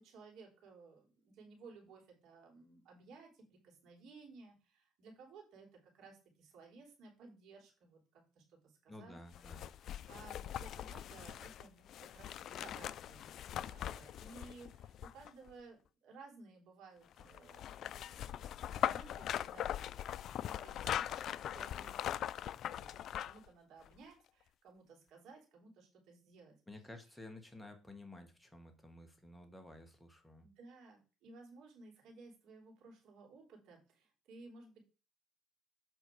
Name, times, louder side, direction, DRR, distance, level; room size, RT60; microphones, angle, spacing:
voice 1, 0.0-9.2 9.5-12.3 12.6-18.4 18.7-19.7 20.3-22.1 22.8-26.6 30.4-34.9, right 4 dB, 65° right, 1 dB, 3.6 m, -57 dB
voice 2, 8.9-9.7 26.7-30.5, left 2 dB, 5° left, 4 dB, 1.6 m, -53 dB
sound 1, 9.3-15.5 17.2-23.5 23.9-24.0, left 11 dB, 55° left, 0.3 m, -41 dB
7.8 x 4.8 x 4.7 m, 0.33 s
cardioid pair, 120°, 0 cm